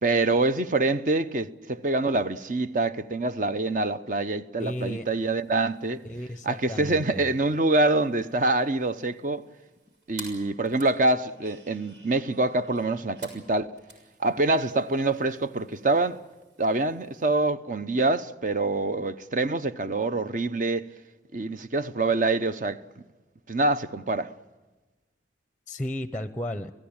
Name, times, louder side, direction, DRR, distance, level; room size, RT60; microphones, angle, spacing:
voice 1, 0.0-6.0 6.4-9.4 10.1-13.7 14.2-16.2 16.6-20.8 21.3-22.8 23.5-24.3, right 2 dB, 45° right, 0.8 m, -25 dB
voice 2, 4.6-5.1 6.0-7.2 25.7-26.7, left 1 dB, 10° left, 0.7 m, -33 dB
sound 1, 5.0-17.3, right 3 dB, 85° right, 6.6 m, -52 dB
28.0 x 16.5 x 8.8 m
head